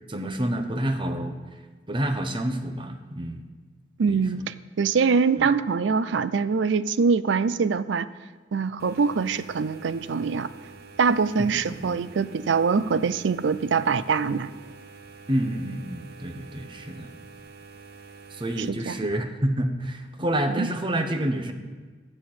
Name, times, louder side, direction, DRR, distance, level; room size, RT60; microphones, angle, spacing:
voice 1, 0.1-1.4 1.9-3.4 4.1-4.2 5.4-5.5 11.4-12.0 15.3-17.1 18.3-21.5, right 1 dB, 30° right, 6 dB, 0.9 m, -28 dB
voice 2, 4.0-8.1 8.5-10.5 11.0-14.5 18.6-19.0 20.5-20.7, right 5 dB, 80° right, 15 dB, 0.4 m, -24 dB
sound 1, 8.8-18.7, right 4 dB, 60° right, 0.8 m, -47 dB
12.0 x 4.3 x 7.7 m, 1.4 s
head